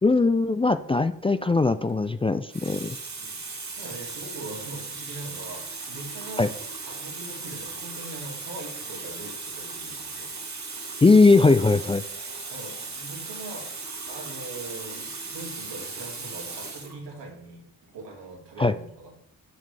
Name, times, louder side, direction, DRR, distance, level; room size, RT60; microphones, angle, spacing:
voice 1, 0.0-3.0 6.4-6.5 11.0-12.0 18.6-18.7, left 3 dB, 15° left, 11 dB, 0.3 m, -20 dB
Water tap faucet, 1.7-1.9 2.5-17.0 17.9-18.1, right 4 dB, 45° right, 1.8 m, -37 dB
voice 2, 3.2-6.6 6.9-10.3 12.5-13.7 14.1-17.6 17.9-19.1, right 2 dB, 80° right, -2 dB, 2.8 m, -41 dB
7.0 x 6.6 x 3.3 m, 0.76 s
supercardioid pair, 50°, 40 cm